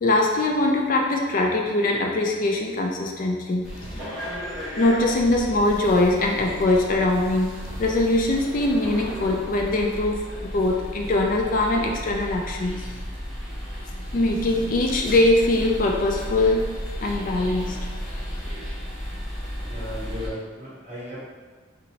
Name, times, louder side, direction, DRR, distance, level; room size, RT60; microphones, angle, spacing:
voice 1, 0.0-3.6 4.3-4.4 4.8-7.5 7.8-12.9 14.1-16.7 17.0-17.8, left 2 dB, 45° left, 1 dB, 0.3 m, -22 dB
sound 1, 3.6-20.3, equal, ahead, 1.2 m, -34 dB
voice 2, 19.6-21.2, equal, 40° right, -8 dB, 1.2 m, -36 dB
3.8 x 2.5 x 3.0 m, 1.4 s
head